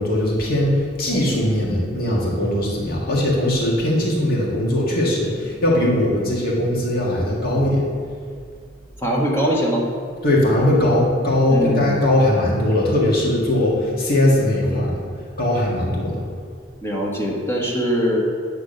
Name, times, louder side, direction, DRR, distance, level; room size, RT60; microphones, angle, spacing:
voice 1, 0.0-7.8 10.2-15.0 15.4-16.2, left 1 dB, 55° left, -4 dB, 1.7 m, -20 dB
voice 2, 9.0-9.9 11.5-12.0 16.8-18.2, equal, 15° left, -2 dB, 1.3 m, -22 dB
8.9 x 3.5 x 6.5 m, 2.1 s
head